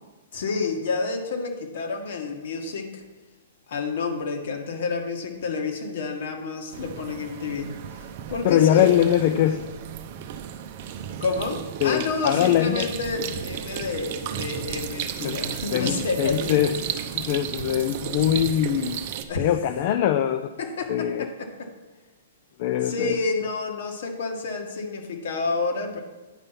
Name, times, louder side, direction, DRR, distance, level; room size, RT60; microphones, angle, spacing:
voice 1, 0.3-3.0 3.7-9.1 11.2-16.6 17.6-17.7 19.3-19.5 20.6-21.7 22.8-26.0, left 4 dB, 55° left, 4 dB, 1.6 m, -29 dB
sound 1, 6.7-19.3, right 9 dB, 40° right, 0.6 m, -34 dB
voice 2, 8.4-9.6 11.8-12.9 15.2-15.3 15.7-16.7 17.1-19.0 19.4-20.5 20.9-21.3 22.6-23.2, left 11 dB, 40° left, 9 dB, 0.4 m, -22 dB
9.7 x 5.3 x 5.7 m, 1.2 s
hypercardioid pair, 165°, 0 cm